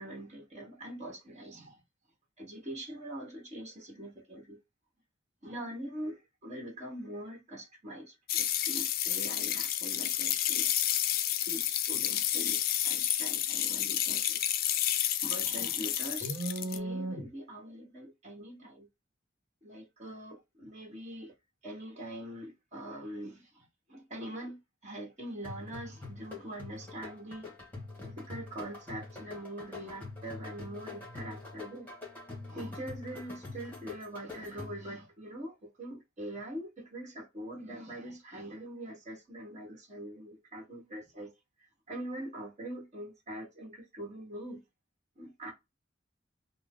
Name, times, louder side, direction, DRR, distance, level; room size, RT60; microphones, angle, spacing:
voice 1, 0.0-1.8 2.4-4.6 5.4-10.7 11.5-14.5 15.2-18.9 19.6-21.3 21.6-27.5 28.0-31.9 32.5-41.3 41.6-44.6 45.2-45.5, right 1 dB, 40° right, 1.2 m, -42 dB
sound 1, 8.3-16.8, left 11 dB, 50° left, 0.3 m, -30 dB
sound 2, 25.4-35.0, left 3 dB, 10° left, 1.1 m, -45 dB
2.7 x 2.0 x 3.5 m
head